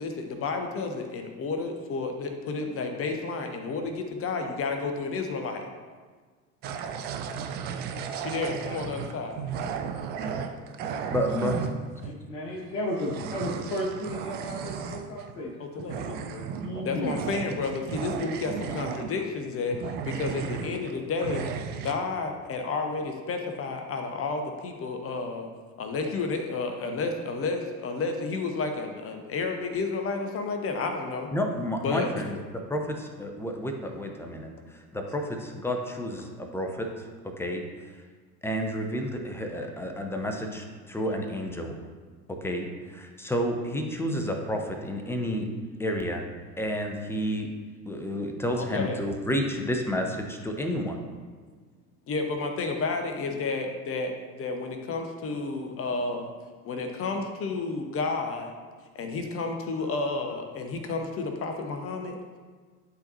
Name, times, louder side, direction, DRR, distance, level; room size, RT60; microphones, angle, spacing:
voice 1, 0.0-5.6 8.2-9.4 15.6-16.5 16.8-21.5 21.8-25.5 25.8-31.3 31.8-32.3 48.6-49.0 52.1-56.3 56.6-58.5 58.9-62.2, left 4 dB, 30° left, 4 dB, 0.9 m, -31 dB
sound 1, 6.6-12.1 12.7-15.3 15.8-19.4 19.7-20.9 21.2-21.9, right 7 dB, 25° right, 0.3 m, -34 dB
voice 2, 11.1-11.6 31.3-32.4 32.7-36.9 37.4-37.9 38.4-41.8 42.4-45.5 45.8-46.2 46.6-47.5 47.9-51.0, equal, 5° left, 3 dB, 0.7 m, -30 dB
voice 3, 12.0-15.5 16.6-17.2, equal, 50° left, -5 dB, 1.5 m, -33 dB
11.5 x 4.1 x 2.8 m, 1.5 s
figure-of-eight pair, 70°, 47 cm